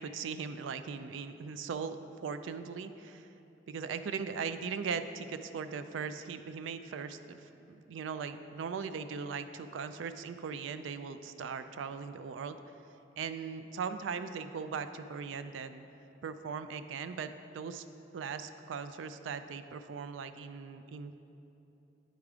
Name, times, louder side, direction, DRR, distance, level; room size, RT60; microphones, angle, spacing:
voice 1, 0.0-2.0 2.2-3.3 3.7-12.6 13.2-15.8 16.2-17.8 18.1-21.2, right 6 dB, 85° right, 11 dB, 0.3 m, -39 dB
9.1 x 3.6 x 4.9 m, 3.0 s
head